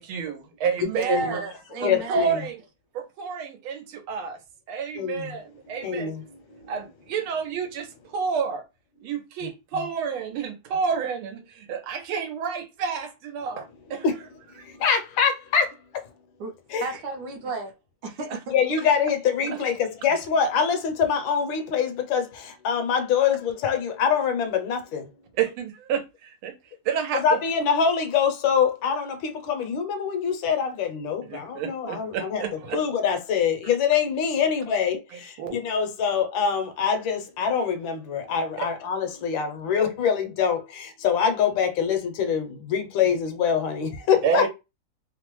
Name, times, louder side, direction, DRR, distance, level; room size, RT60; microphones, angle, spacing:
voice 1, 0.0-1.4 1.8-2.6 2.9-4.4 4.7-6.1 6.7-8.6 9.0-14.0 18.3-18.4 25.4-26.5 26.8-27.4 31.2-32.8 34.4-34.5 35.1-35.6 44.2-44.5, right 6 dB, 90° right, 1.5 m, -29 dB
voice 2, 0.9-2.3 16.4-16.5 16.8-17.7 18.0-18.5, right 3 dB, 70° right, 1.2 m, -32 dB
voice 3, 1.8-2.4 5.0-5.2 5.8-6.2 14.0-14.1 14.8-15.6 16.7-16.9 18.5-22.2 22.6-25.0 27.1-32.4 32.7-35.0 35.5-40.6 41.0-44.5, left 7 dB, 75° left, 1.3 m, -24 dB
3.5 x 2.0 x 3.0 m
omnidirectional pair, 2.2 m